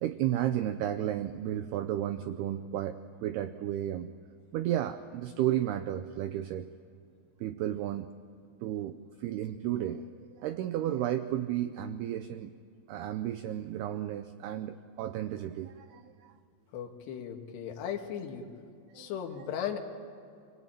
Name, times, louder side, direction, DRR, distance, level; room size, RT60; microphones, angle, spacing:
voice 1, 0.0-4.1 4.5-6.7 7.4-8.1 8.6-12.5 12.9-16.3 18.9-19.1 19.4-19.5, right 12 dB, 85° right, 10 dB, 2.3 m, -33 dB
voice 2, 16.7-18.5 19.0-19.8, left 9 dB, 65° left, 2 dB, 3.7 m, -36 dB
25.0 x 20.5 x 9.1 m, 2.5 s
omnidirectional pair, 5.5 m